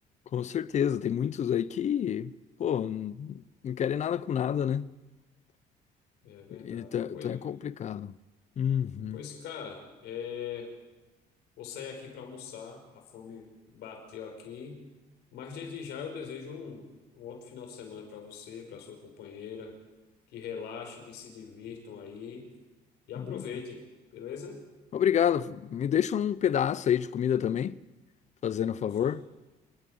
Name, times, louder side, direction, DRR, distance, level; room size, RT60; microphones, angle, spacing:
voice 1, 0.3-2.3 2.6-4.9 6.5-8.1 8.6-9.2 23.2-23.4 24.9-27.8 28.4-29.2, left 9 dB, 45° left, 0.7 m, -29 dB
voice 2, 6.2-7.3 9.1-10.7 11.6-14.8 15.3-16.9 17.1-19.8 20.3-22.5 23.1-23.8 24.1-24.6 28.8-29.1, left 7 dB, 80° left, 5.3 m, -42 dB
29.0 x 9.8 x 9.4 m
cardioid pair, 110°, 17 cm